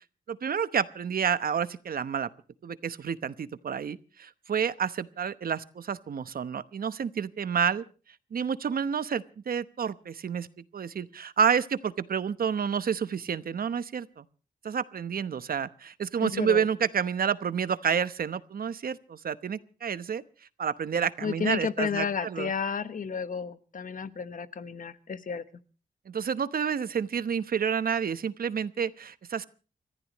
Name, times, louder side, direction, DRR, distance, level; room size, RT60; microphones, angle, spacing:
voice 1, 0.3-2.3 2.6-7.8 8.3-10.5 10.7-14.2 14.6-20.2 20.6-22.5 26.1-29.5, right 7 dB, 65° right, 14 dB, 1.0 m, -29 dB
voice 2, 16.2-16.7 21.2-25.4, left 6 dB, 55° left, 13 dB, 1.2 m, -32 dB
30.0 x 14.5 x 3.1 m, 0.36 s
wide cardioid pair, 135°, 16 cm